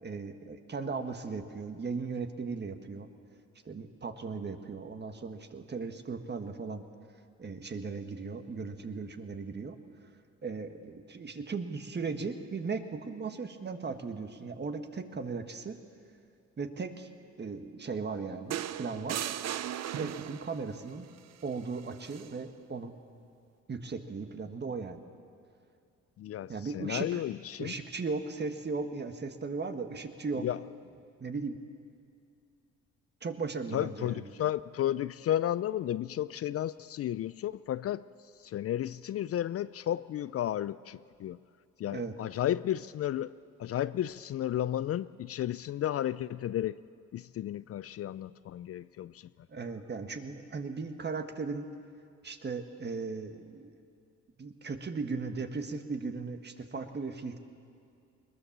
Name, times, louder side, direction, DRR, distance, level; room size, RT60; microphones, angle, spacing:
voice 1, 0.0-3.1 3.6-6.8 7.4-9.7 10.4-15.8 16.6-17.1 17.4-19.2 19.9-21.1 21.4-22.9 23.7-25.0 26.5-27.2 27.6-30.4 31.2-31.6 33.2-34.3 41.9-42.1 49.5-51.7 52.2-53.8 54.4-57.4, right 4 dB, 35° right, 1.6 m, -37 dB
sound 1, 18.5-20.6 22.0-22.3, right 11 dB, 60° right, 0.6 m, -36 dB
voice 2, 26.2-27.8 30.3-30.6 33.7-38.0 38.4-41.4 41.8-43.3 43.6-46.8 47.1-49.3, left 12 dB, 50° left, 0.4 m, -33 dB
21.0 x 20.5 x 7.3 m
cardioid pair, 90°, 30 cm